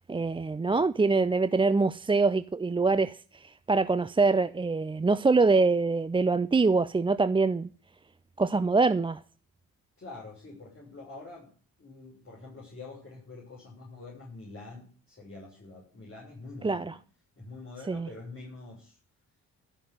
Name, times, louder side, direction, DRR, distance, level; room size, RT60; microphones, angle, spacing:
voice 1, 0.1-7.7 8.4-9.2 16.6-16.9 17.9-18.1, right 3 dB, 15° right, 0.5 m, -24 dB
voice 2, 10.0-11.5 11.8-17.0 17.4-19.0, left 3 dB, 35° left, 6.6 m, -46 dB
13.0 x 6.1 x 9.3 m
hypercardioid pair, 45°, 39 cm